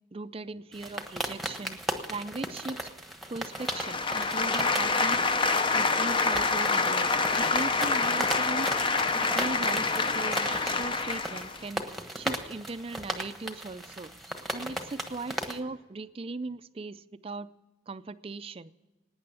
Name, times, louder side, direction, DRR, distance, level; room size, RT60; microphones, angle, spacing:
voice 1, 0.1-1.8 2.1-2.9 3.3-5.2 5.7-8.7 9.2-11.8 12.1-14.1 14.5-17.5 17.9-18.7, right 3 dB, 30° right, 14 dB, 0.4 m, -38 dB
sound 1, 0.7-15.6, right 1 dB, ahead, 1.2 m, -37 dB
sound 2, 3.6-11.6, left 4 dB, 25° left, 0.6 m, -27 dB
17.5 x 9.6 x 7.0 m, 1.1 s
head